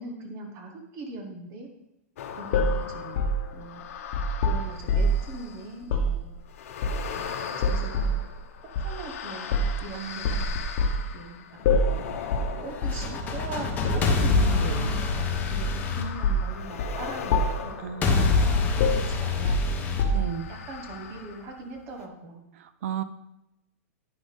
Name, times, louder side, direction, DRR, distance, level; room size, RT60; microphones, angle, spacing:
voice 1, 0.0-1.7 2.4-3.2 3.5-3.8 4.4-6.3 7.1-8.2 8.6-10.4 11.1-12.1 12.6-17.7 18.2-20.2 20.5-22.4, right 2 dB, 35° right, 3 dB, 1.3 m, -40 dB
sound 1, 2.2-5.8 6.5-19.3 20.1-21.7 22.0-22.1, left 7 dB, 70° left, 0.9 m, -40 dB
sound 2, 2.5-5.3 5.8-6.2 6.8-7.2 7.6-8.2 8.7-8.9 9.5-9.8 10.2-11.0 11.6-12.0 12.3-12.5 12.8-13.1 13.8-14.5 15.1-15.8 16.2-16.5 16.8-17.0 17.3-17.7 18.1-18.4 18.8-20.5, left 1 dB, 50° left, 1.2 m, -25 dB
voice 2, 9.9-10.5 14.4-14.9 17.8-18.4 20.1-20.5 22.6-23.0, right 9 dB, 65° right, 13 dB, 0.6 m, -34 dB
sound 3, 12.7-16.9 18.0-20.9, left 4 dB, 20° left, 1.1 m, -26 dB
9.7 x 6.4 x 3.5 m, 0.88 s
supercardioid pair, 150°, 8 cm